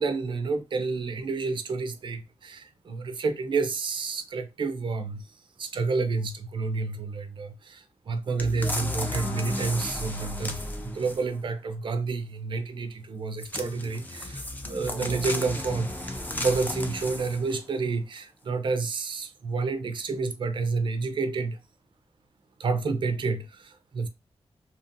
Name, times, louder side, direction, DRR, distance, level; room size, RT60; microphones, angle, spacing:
voice 1, 0.0-5.2 5.6-21.6 22.6-24.1, right 4 dB, 45° right, 0.4 m, -29 dB
sound 1, 8.4-11.4 13.4-17.6 18.1-18.2, left 1 dB, 15° left, 0.4 m, -34 dB
2.7 x 2.5 x 2.6 m
wide cardioid pair, 145°, 11 cm